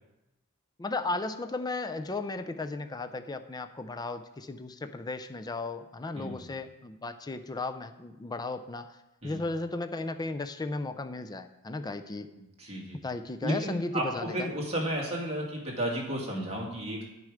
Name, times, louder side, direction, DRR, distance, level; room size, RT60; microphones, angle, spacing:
voice 1, 0.8-9.0 9.2-12.3 13.0-14.5, left 3 dB, 20° left, 9 dB, 0.4 m, -35 dB
voice 2, 12.6-13.0 13.4-17.0, right 1 dB, 30° right, -3 dB, 2.3 m, -33 dB
10.5 x 6.4 x 4.9 m, 0.96 s
head